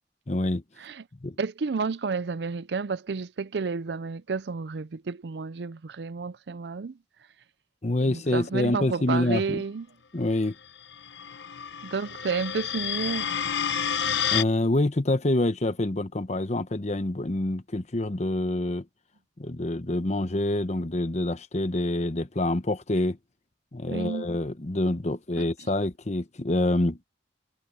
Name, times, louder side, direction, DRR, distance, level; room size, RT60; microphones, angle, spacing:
voice 1, 0.3-0.6 1.2-1.4 7.8-9.6 10.1-10.6 14.3-18.8 19.4-23.2 23.7-27.0, left 1 dB, 40° left, 1.0 m, -26 dB
voice 2, 1.4-7.0 8.0-9.9 11.8-13.3 23.9-24.3 25.4-25.5, right 4 dB, 65° right, 0.5 m, -31 dB
sound 1, 10.8-14.4, left 8 dB, 75° left, 1.0 m, -29 dB
head